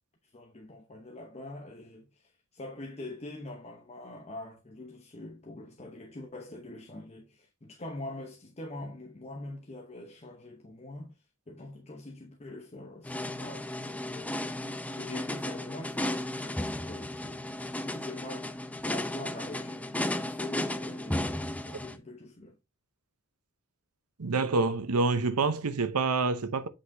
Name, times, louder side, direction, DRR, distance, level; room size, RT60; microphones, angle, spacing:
voice 1, 0.2-14.4 15.0-18.5 18.8-21.4 21.6-22.6, left 2 dB, 30° left, 0.9 m, -44 dB
sound 1, 13.0-22.0, left 1 dB, 5° left, 0.5 m, -34 dB
voice 2, 24.2-26.7, right 3 dB, 85° right, 0.8 m, -27 dB
8.1 x 5.0 x 2.7 m
head